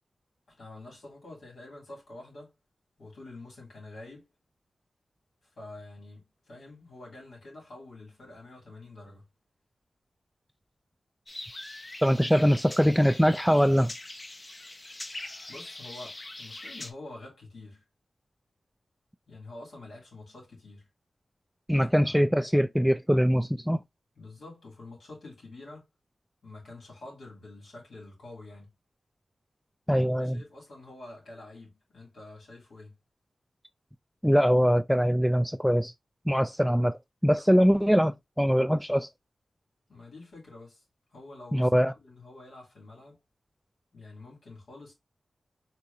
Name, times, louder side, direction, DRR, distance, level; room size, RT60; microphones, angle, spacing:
voice 1, 0.5-2.5 3.0-4.3 5.4-9.3 15.5-17.8 19.3-20.9 22.0-22.1 24.1-25.9 26.4-28.7 30.2-33.0 39.9-40.8 41.1-43.2 43.9-44.9, left 2 dB, 80° left, 2.7 m, -47 dB
sound 1, 11.3-16.9, left 2 dB, 35° left, 0.7 m, -42 dB
voice 2, 12.0-13.9 21.7-23.8 29.9-30.4 34.2-35.9 36.3-39.1 41.5-41.9, equal, ahead, 0.3 m, -23 dB
4.6 x 2.9 x 2.6 m
cardioid pair, 40°, 0 cm